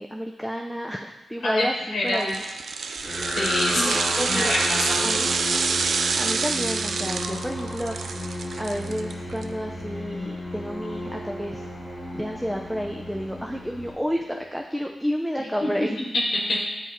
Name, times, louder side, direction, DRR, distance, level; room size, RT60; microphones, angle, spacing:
voice 1, 0.0-2.4 3.7-4.5 5.0-5.3 6.2-11.6 12.1-16.0, equal, ahead, 1 dB, 0.4 m, -30 dB
voice 2, 1.9-2.2 3.4-4.0 4.3-5.0 15.6-15.7 16.5-16.6, left 1 dB, 75° left, -3 dB, 1.0 m, -25 dB
sound 1, 2.1-9.4 9.8-9.9, right 5 dB, 70° right, 0.3 m, -27 dB
sound 2, 3.0-14.4, left 1 dB, 25° left, 2.0 m, -33 dB
7.7 x 3.0 x 4.3 m, 1.2 s
wide cardioid pair, 90°, 0 cm